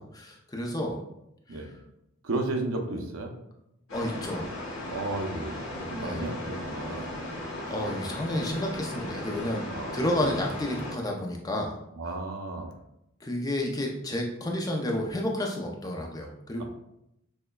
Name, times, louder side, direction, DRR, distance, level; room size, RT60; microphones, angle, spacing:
voice 1, 0.1-1.0 1.5-1.7 3.9-4.5 6.0-6.3 7.7-9.6 9.9-11.8 13.2-16.6, left 1 dB, 15° left, 0 dB, 0.4 m, -31 dB
voice 2, 2.2-3.3 4.9-7.2 9.7-10.0 10.2-10.4 12.0-12.7 16.6-16.7, right 2 dB, 80° right, 3 dB, 0.6 m, -33 dB
sound 1, 3.9-10.9, left 1 dB, 70° left, 1.0 m, -37 dB
6.2 x 2.1 x 2.3 m, 0.82 s
head